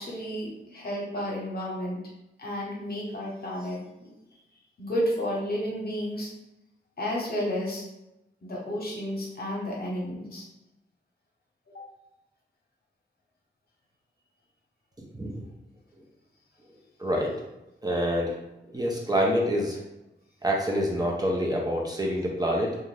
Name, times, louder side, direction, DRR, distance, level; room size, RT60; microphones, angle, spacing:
voice 1, 0.0-2.0 2.4-4.1 4.8-6.3 7.0-7.8 8.4-10.4 11.7-11.8, equal, 50° left, -3 dB, 0.9 m, -32 dB
voice 2, 17.0-17.4 17.8-18.4 18.6-19.8 20.4-22.8, equal, 20° right, -1 dB, 0.5 m, -26 dB
2.6 x 2.3 x 3.1 m, 0.91 s
wide cardioid pair, 90°, 20 cm